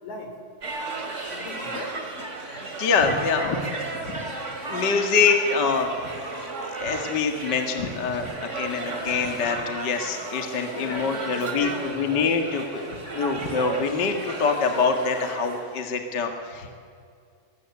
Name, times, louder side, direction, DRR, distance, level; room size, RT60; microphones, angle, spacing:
voice 1, 0.0-0.3 1.3-2.0 3.3-3.8 10.0-10.3 10.7-12.3 16.6-16.7, left 2 dB, 60° left, 5 dB, 4.6 m, -38 dB
sound 1, 0.6-15.8, right 3 dB, 25° right, 2.5 m, -34 dB
voice 2, 2.5-3.6 4.1-4.2 4.6-5.9 6.7-16.7, left 5 dB, 40° left, 5 dB, 1.9 m, -25 dB
23.5 x 21.0 x 8.4 m, 2.3 s
omnidirectional pair, 3.9 m